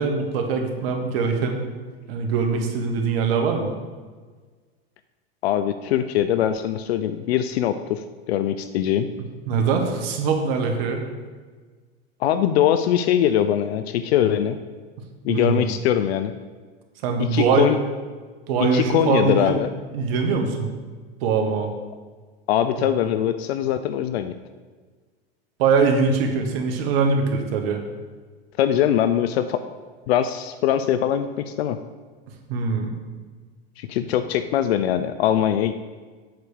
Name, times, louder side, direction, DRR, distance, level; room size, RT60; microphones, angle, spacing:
voice 1, 0.0-1.6 2.1-3.7 9.5-11.0 15.3-15.7 17.0-17.7 18.5-19.6 19.9-20.7 21.2-21.7 22.8-22.9 25.6-27.8 32.5-33.0, right 5 dB, 65° right, 4 dB, 1.6 m, -22 dB
voice 2, 5.4-8.0 8.3-9.1 12.2-14.6 15.2-16.3 17.2-17.8 18.6-19.7 22.5-24.3 28.6-29.6 30.1-31.8 33.8-35.7, left 10 dB, 75° left, 10 dB, 0.6 m, -22 dB
8.1 x 4.9 x 6.4 m, 1.4 s
hypercardioid pair, 110°, 31 cm